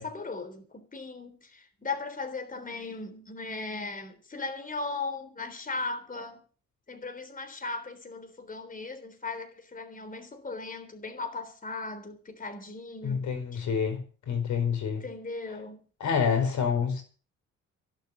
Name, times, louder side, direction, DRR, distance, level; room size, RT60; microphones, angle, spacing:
voice 1, 0.0-6.4 6.9-13.2 13.5-13.6 15.0-15.8 16.4-16.5, left 3 dB, 25° left, 3.5 m, -37 dB
voice 2, 13.0-14.0 14.3-15.0 16.0-17.0, left 6 dB, 70° left, 4.9 m, -27 dB
16.5 x 7.7 x 8.5 m
cardioid pair, 90°, 30 cm